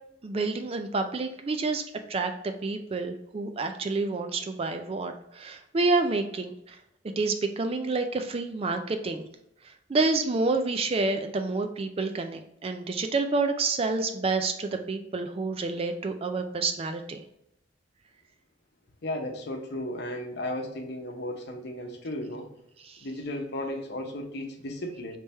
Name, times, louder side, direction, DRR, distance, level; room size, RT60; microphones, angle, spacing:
voice 1, 0.2-1.8 2.1-6.8 7.2-9.3 9.9-17.2 22.8-23.0, right 3 dB, 30° right, 6 dB, 0.4 m, -28 dB
voice 2, 19.0-22.5 23.0-25.2, left 1 dB, 60° left, 3 dB, 0.8 m, -35 dB
3.4 x 3.3 x 4.1 m, 0.78 s
head